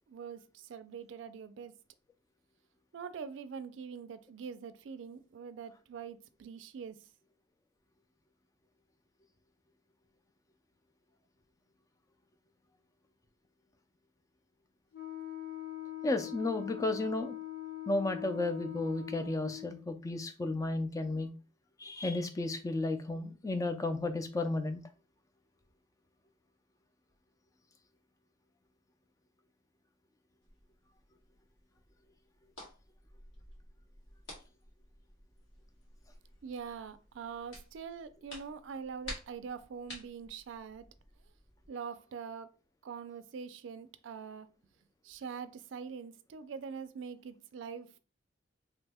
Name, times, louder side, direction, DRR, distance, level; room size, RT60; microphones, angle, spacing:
voice 1, 0.1-1.7 2.9-7.0 36.4-40.9 41.7-42.5 42.8-44.5 45.0-48.0, right 6 dB, 70° right, 0.3 m, -44 dB
Wind instrument woodwind instrument, 14.9-19.8, left 13 dB, 60° left, 1.0 m, -42 dB
voice 2, 16.0-17.3 17.9-21.3 21.8-24.8, left 2 dB, 15° left, 0.3 m, -33 dB
sound 1, 30.4-41.7, left 1 dB, 80° left, 1.6 m, -52 dB
2.9 x 2.1 x 3.4 m
head